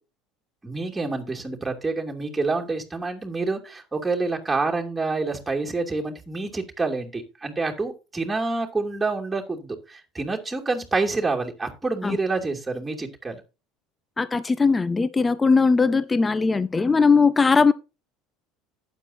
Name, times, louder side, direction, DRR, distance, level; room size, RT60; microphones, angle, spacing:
voice 1, 0.6-13.4, right 3 dB, 15° right, 2.8 m, -27 dB
voice 2, 14.2-17.7, left 4 dB, 20° left, 0.6 m, -19 dB
12.0 x 9.2 x 2.8 m
hypercardioid pair, 70°, 0 cm